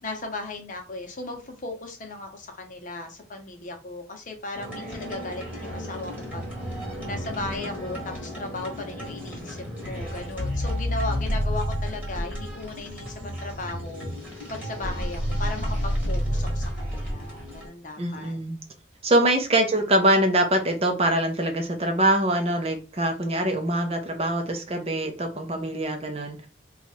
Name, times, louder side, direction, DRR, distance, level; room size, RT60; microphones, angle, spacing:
voice 1, 0.0-14.1 14.5-18.3, left 2 dB, 40° left, 0.8 m, -36 dB
sound 1, 4.5-17.7, equal, 10° right, 1.2 m, -31 dB
voice 2, 18.0-18.6 19.0-26.5, right 1 dB, 30° right, 0.6 m, -24 dB
2.9 x 2.4 x 4.2 m
head